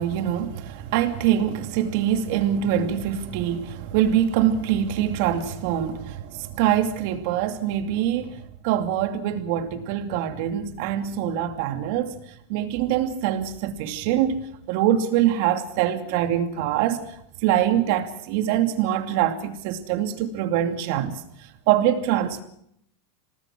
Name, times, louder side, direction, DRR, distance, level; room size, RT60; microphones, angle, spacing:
voice 1, 0.0-8.4 8.6-12.2 12.5-14.4 14.7-17.0 17.4-21.2 21.7-22.4, right 10 dB, 50° right, 2.6 m, -24 dB
27.5 x 19.0 x 6.1 m
supercardioid pair, 170°, 0 cm